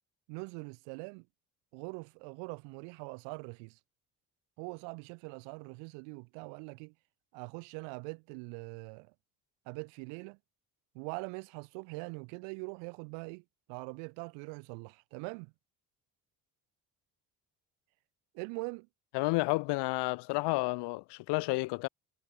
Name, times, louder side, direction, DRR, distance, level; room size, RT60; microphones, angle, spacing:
voice 1, 0.3-1.3 1.7-3.8 4.6-6.9 7.3-9.1 9.7-10.4 10.9-15.5 18.3-18.9, right 35 dB, 85° right, 0.6 m, -43 dB
voice 2, 19.1-21.9, left 24 dB, 75° left, 0.5 m, -31 dB
supercardioid pair, 65°, 42 cm